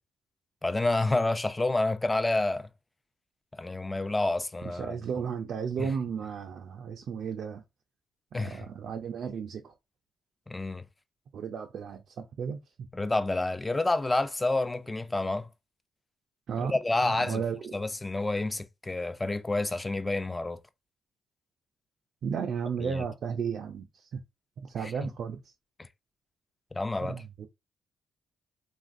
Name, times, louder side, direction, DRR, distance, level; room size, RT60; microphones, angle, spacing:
voice 1, 0.6-2.7 3.5-5.0 5.8-5.9 8.3-8.6 10.5-10.8 12.9-15.5 16.6-17.4 17.7-20.6 22.8-23.0 24.8-24.9 25.8-25.9 26.7-27.2, left 2 dB, 15° left, 0.4 m, -29 dB
voice 2, 4.6-7.6 8.3-9.7 11.3-12.6 16.5-17.7 22.2-24.2 24.6-25.4 27.0-27.5, right 6 dB, 65° right, 0.4 m, -34 dB
2.9 x 2.4 x 2.5 m
cardioid pair, 90°, 0 cm